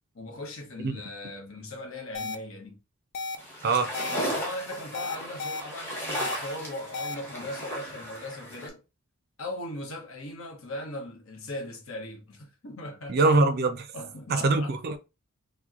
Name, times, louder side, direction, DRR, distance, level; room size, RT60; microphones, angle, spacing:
voice 1, 0.1-2.8 4.1-8.8 9.4-13.3 13.9-14.7, left 1 dB, 65° left, 0.9 m, -38 dB
sound 1, 2.1-2.3 3.1-3.4 3.9-4.1 4.9-5.6 6.1-6.4 6.9-7.1, left 3 dB, 45° left, 0.4 m, -33 dB
sound 2, 3.4-8.7, equal, 10° left, 0.9 m, -36 dB
voice 2, 3.6-3.9 13.1-13.9 14.3-15.0, right 3 dB, 45° right, 0.4 m, -23 dB
2.9 x 2.2 x 3.6 m
head